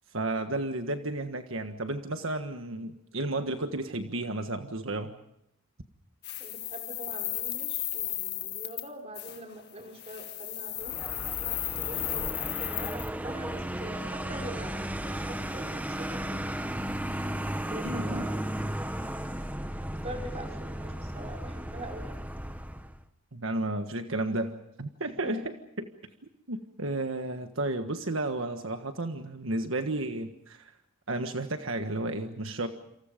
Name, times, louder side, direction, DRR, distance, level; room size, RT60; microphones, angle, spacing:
voice 1, 0.1-5.1 17.8-18.2 23.3-25.9 26.5-30.7 31.1-32.7, right 2 dB, 65° right, 7 dB, 1.5 m, -32 dB
sound 1, 6.2-8.9 9.1-9.4 9.9-13.1, left 14 dB, 50° left, 1.7 m, -34 dB
voice 2, 6.4-11.0 11.8-16.7 17.7-18.6 19.9-22.2 25.2-25.3, right 1 dB, 30° right, 3 dB, 5.3 m, -43 dB
Vehicle, 10.8-23.0, right 1 dB, 5° right, 1.1 m, -35 dB
28.5 x 27.5 x 5.2 m, 0.78 s
head